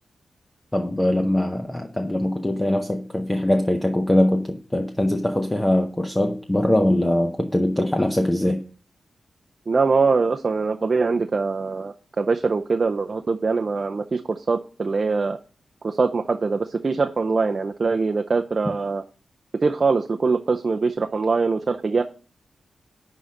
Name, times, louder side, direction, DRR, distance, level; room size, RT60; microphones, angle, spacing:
voice 1, 0.7-8.6, left 1 dB, 10° left, 0.7 m, -22 dB
voice 2, 9.7-15.4 15.8-19.0 19.6-22.0, right 4 dB, 35° right, 0.5 m, -23 dB
11.0 x 3.9 x 7.4 m
wide cardioid pair, 155°, 0 cm